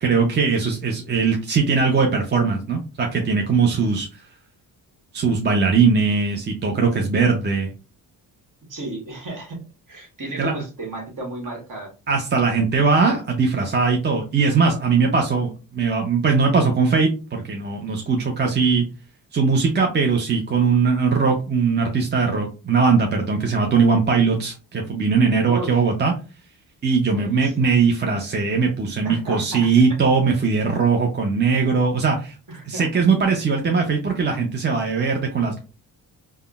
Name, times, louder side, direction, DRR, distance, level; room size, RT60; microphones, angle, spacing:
voice 1, 0.0-4.2 5.1-7.7 10.4-10.5 12.1-18.9 19.3-26.1 26.8-32.4 32.7-35.6, right 5 dB, 25° right, 2 dB, 0.5 m, -20 dB
voice 2, 8.7-9.6 9.9-11.9 25.4-25.8 27.1-27.7 29.0-29.7 32.5-32.9 33.3-33.4, right 2 dB, 45° right, 1 dB, 1.4 m, -33 dB
3.5 x 2.1 x 2.3 m, 0.33 s
supercardioid pair, 65°, 43 cm